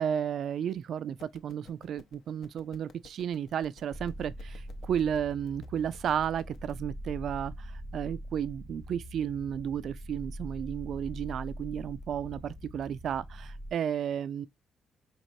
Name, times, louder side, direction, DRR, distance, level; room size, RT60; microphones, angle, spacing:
voice 1, 0.0-14.5, right 9 dB, 65° right, 0.3 m, -33 dB
sound 1, 1.2-6.7, left 5 dB, 75° left, 0.7 m, -56 dB
sound 2, 3.9-13.7, equal, 15° left, 0.8 m, -43 dB
4.3 x 3.1 x 2.6 m
cardioid pair, 90°, 0 cm